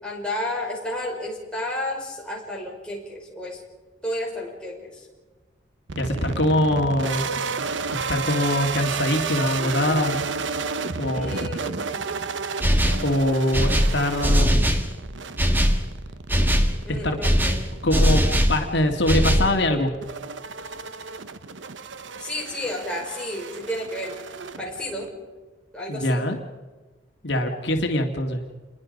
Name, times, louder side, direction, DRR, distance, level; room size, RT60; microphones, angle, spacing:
voice 1, 0.0-3.6 4.0-5.1 11.1-11.9 16.8-17.6 22.2-24.2 24.6-25.1 25.7-26.2, left 1 dB, 5° left, -3 dB, 5.8 m, -31 dB
sound 1, 5.9-25.1, right 4 dB, 85° right, 1.0 m, -32 dB
voice 2, 6.0-7.3 7.9-10.2 11.0-11.3 13.0-14.7 16.9-17.2 17.8-18.2 18.5-19.9 25.9-26.4 27.2-28.4, left 1 dB, 70° left, 3 dB, 2.2 m, -23 dB
sound 2, 12.6-13.1 13.5-14.9 15.4-15.8 16.3-16.7 17.2-18.6 19.1-19.5, equal, 10° right, 1.7 m, -20 dB
28.5 x 22.0 x 5.3 m, 1.3 s
head